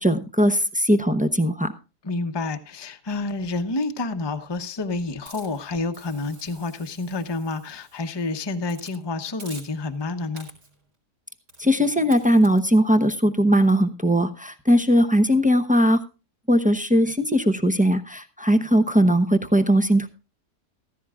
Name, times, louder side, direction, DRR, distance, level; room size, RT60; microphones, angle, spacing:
voice 1, 0.0-1.7 11.6-16.0 16.5-20.1, equal, 10° right, 0.4 m, -19 dB
voice 2, 2.0-10.5, left 3 dB, 20° left, 0.8 m, -29 dB
Hiss, 5.3-8.1 8.7-9.0 9.4-10.0 10.4-10.8 11.5-11.7 12.1-12.6, right 1 dB, 75° right, 4.3 m, -47 dB
15.5 x 14.5 x 2.4 m
omnidirectional pair, 1.8 m